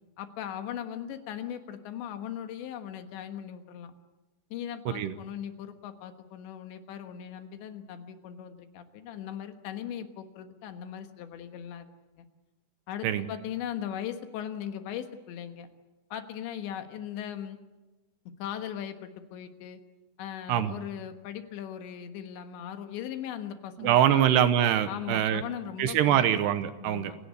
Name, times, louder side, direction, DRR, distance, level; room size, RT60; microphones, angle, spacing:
voice 1, 0.2-3.9 4.5-11.9 12.2-12.3 12.9-15.7 16.1-17.6 18.4-19.8 20.2-24.2 24.9-26.4 26.8-27.2, left 9 dB, 80° left, 8 dB, 3.7 m, -39 dB
voice 2, 23.8-25.4 25.8-27.1, right 10 dB, 75° right, 11 dB, 2.9 m, -24 dB
28.5 x 17.0 x 8.4 m, 1.1 s
omnidirectional pair, 5.2 m